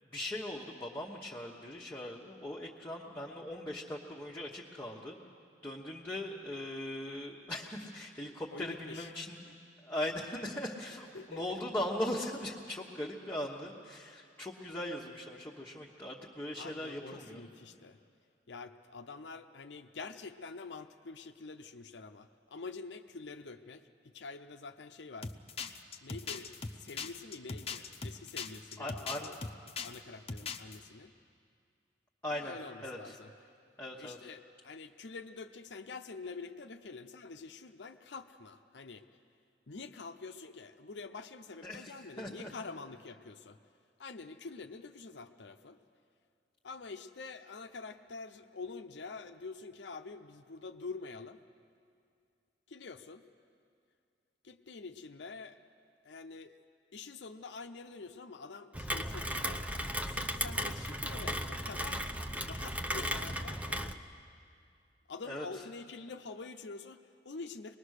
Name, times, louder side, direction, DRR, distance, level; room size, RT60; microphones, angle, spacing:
voice 1, 0.1-5.2 5.6-17.4 17.7-17.8 28.8-29.3 32.2-32.5 32.8-33.2 33.8-34.3 41.6-42.5 65.3-65.5, left 1 dB, 10° left, -4 dB, 1.2 m, -40 dB
voice 2, 8.5-9.1 11.1-11.6 16.6-18.0 18.5-25.3 26.0-29.4 29.7-31.1 32.3-33.3 33.9-39.0 39.7-43.6 44.0-45.8 46.6-51.4 52.7-53.2 54.4-55.6 56.0-56.5 56.9-59.6 60.0-64.0 65.1-67.8, left 4 dB, 75° left, 7 dB, 0.7 m, -46 dB
sound 1, 25.2-30.0 30.3-30.8, left 5 dB, 35° left, 0.8 m, -40 dB
Rain, 58.7-63.9, equal, 10° right, 0.7 m, -36 dB
24.0 x 20.0 x 6.5 m, 2.4 s
head